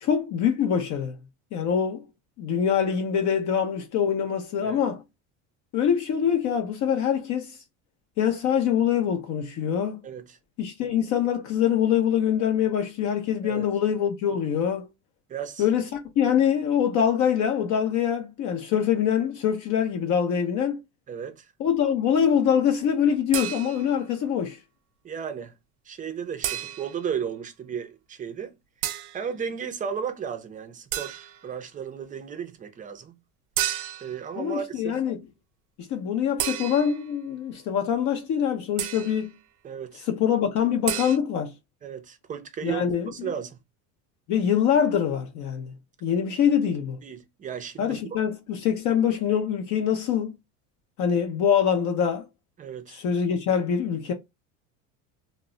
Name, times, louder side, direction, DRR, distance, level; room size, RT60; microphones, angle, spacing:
voice 1, 0.0-1.2 1.5-2.0 2.4-5.0 5.7-7.6 8.2-10.0 10.6-14.9 15.6-15.9 16.2-20.8 21.6-24.6 34.4-35.2 35.8-39.3 40.1-41.5 42.6-43.3 44.3-45.7 46.0-47.0 47.8-50.3 51.0-52.3 52.9-54.1, left 8 dB, 50° left, 0.6 m, -24 dB
voice 2, 10.0-10.4 13.4-13.6 15.3-15.7 21.1-21.5 25.0-25.5 25.9-28.5 29.1-33.1 34.0-35.0 39.6-40.1 41.8-43.6 47.0-48.2 52.6-53.0, right 7 dB, 20° right, 0.4 m, -34 dB
sound 1, 23.3-24.0 26.4-27.1 28.8-29.2 30.9-31.5 33.6-34.2 36.4-37.1 38.8-39.3 40.9-41.2, right 12 dB, 75° right, 0.5 m, -31 dB
2.1 x 2.1 x 3.6 m
supercardioid pair, 110°, 37 cm